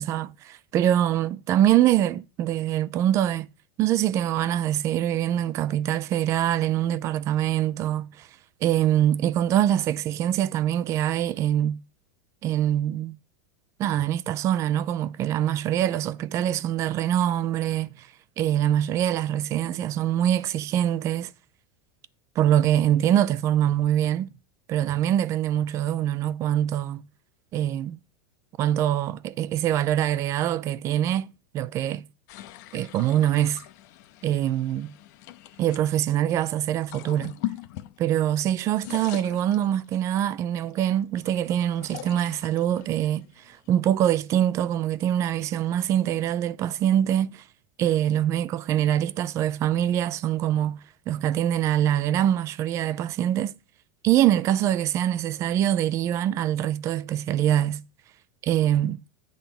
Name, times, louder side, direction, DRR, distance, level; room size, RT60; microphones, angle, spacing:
voice 1, 0.0-3.5 3.8-8.3 8.6-11.8 12.4-13.2 13.8-18.1 18.4-21.3 22.4-24.3 24.7-27.0 27.5-28.0 28.6-32.0 32.7-33.6 34.2-34.9 35.6-37.4 38.0-47.4 47.8-50.8 51.1-53.5 54.0-57.8 58.4-59.0, right 11 dB, 25° right, 0.3 m, -24 dB
sound 1, 32.3-35.8 36.7-38.4 38.6-40.1 40.7-44.1, left 14 dB, 55° left, 0.7 m, -41 dB
8.9 x 3.8 x 6.9 m
supercardioid pair, 155°, 11 cm